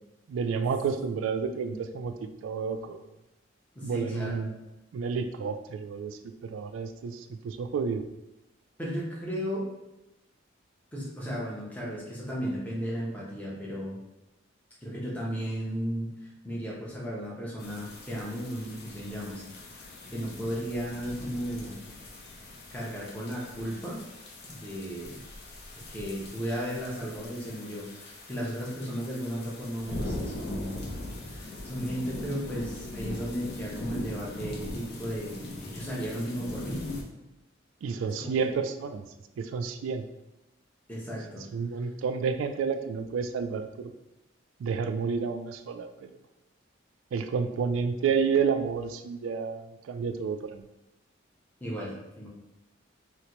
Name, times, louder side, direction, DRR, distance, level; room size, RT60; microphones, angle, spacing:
voice 1, 0.3-2.1 2.4-3.0 3.8-4.5 4.9-8.0 37.8-39.0 39.4-40.0 41.5-43.9 44.6-46.1 47.1-50.7, right 5 dB, 75° right, 8 dB, 0.3 m, -30 dB
voice 2, 3.7-4.4 8.8-9.6 10.9-14.0 14.8-21.8 22.7-24.0 24.4-25.2 25.9-30.9 31.2-36.8 37.9-38.5 40.9-41.4 51.6-52.3, equal, 10° left, -5 dB, 0.7 m, -35 dB
sound 1, 17.6-37.0, left 1 dB, 55° left, 0.5 m, -41 dB
4.1 x 2.1 x 2.9 m, 0.96 s
head